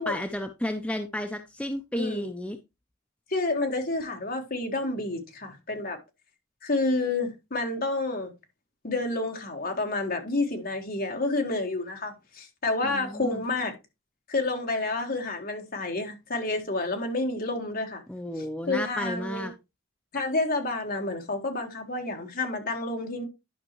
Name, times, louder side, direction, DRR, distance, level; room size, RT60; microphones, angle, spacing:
voice 1, 0.0-2.6 12.8-13.4 18.1-19.5, left 1 dB, 5° left, 0.5 m, -32 dB
voice 2, 1.9-2.3 3.3-6.0 6.6-8.3 8.8-13.7 14.3-18.0 18.7-19.5 20.1-23.3, left 2 dB, 45° left, 1.6 m, -29 dB
11.0 x 5.5 x 3.1 m
head